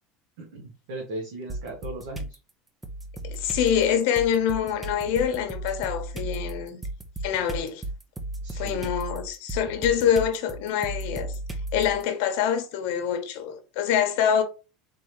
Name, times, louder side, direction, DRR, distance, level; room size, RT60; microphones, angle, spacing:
voice 1, 0.4-2.4 8.4-8.9, right 2 dB, 85° right, 1.4 m, -37 dB
sound 1, 1.5-2.4 2.8-12.0, right 2 dB, 10° right, 0.6 m, -35 dB
voice 2, 3.2-6.8 7.2-7.8 8.5-11.4 11.7-14.4, left 8 dB, 70° left, 1.0 m, -25 dB
3.9 x 3.5 x 3.1 m
supercardioid pair, 140°, 0 cm